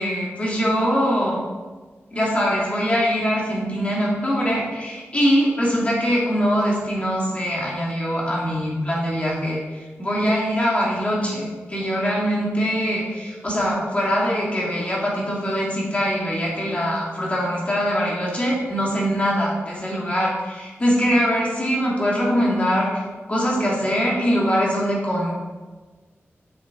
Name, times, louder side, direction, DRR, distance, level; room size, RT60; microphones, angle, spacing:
voice 1, 0.0-1.4 2.1-23.0 23.3-25.3, equal, 30° left, -5 dB, 2.7 m, -22 dB
8.0 x 7.1 x 4.1 m, 1.3 s
wide cardioid pair, 100°, 5 cm